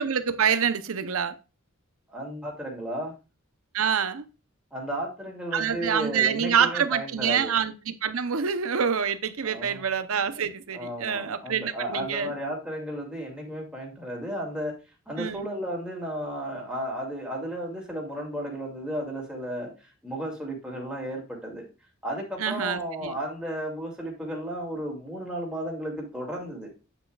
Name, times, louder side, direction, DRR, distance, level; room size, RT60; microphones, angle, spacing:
voice 1, 0.0-1.3 3.7-4.2 5.5-12.3 15.2-15.5 22.4-23.2, right 7 dB, 75° right, 0.7 m, -26 dB
voice 2, 2.1-3.1 4.7-7.5 9.4-9.8 10.7-14.7 15.1-21.6 22.0-26.7, equal, 5° right, 2.3 m, -34 dB
8.6 x 7.1 x 2.3 m
head